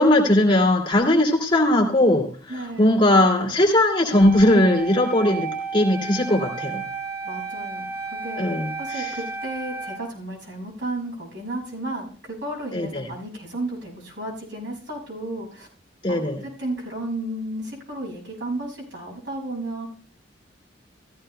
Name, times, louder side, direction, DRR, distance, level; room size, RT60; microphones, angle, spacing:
voice 1, 0.0-6.8 8.4-9.2 12.7-13.1 16.0-16.4, left 1 dB, 25° left, 1 dB, 2.3 m, -19 dB
voice 2, 2.5-3.2 7.2-8.4 8.8-15.7 16.1-16.2 16.4-19.9, right 1 dB, 70° right, -1 dB, 6.6 m, -33 dB
Wind instrument woodwind instrument, 4.1-10.0, right 5 dB, 55° right, 7.0 m, -32 dB
16.5 x 14.5 x 2.2 m, 0.44 s
head